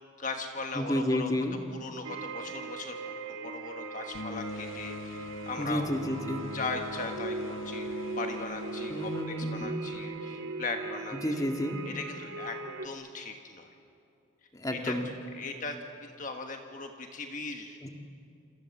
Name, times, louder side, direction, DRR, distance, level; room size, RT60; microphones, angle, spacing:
voice 1, 0.2-1.3 1.7-5.9 6.5-7.8 8.2-11.5 11.8-12.6 12.8-13.7 14.7-15.0 15.4-15.8 16.0-17.8, left 3 dB, 40° left, 4 dB, 1.4 m, -38 dB
voice 2, 0.7-1.6 5.6-6.4 8.9-9.8 11.2-11.8 14.5-15.1 17.8-17.9, equal, 20° left, 4 dB, 1.9 m, -31 dB
sound 1, 2.0-12.9, right 3 dB, 80° right, 1.7 m, -39 dB
sound 2, 4.1-10.2, left 3 dB, 80° left, 0.8 m, -42 dB
28.5 x 27.0 x 7.3 m, 2.6 s
head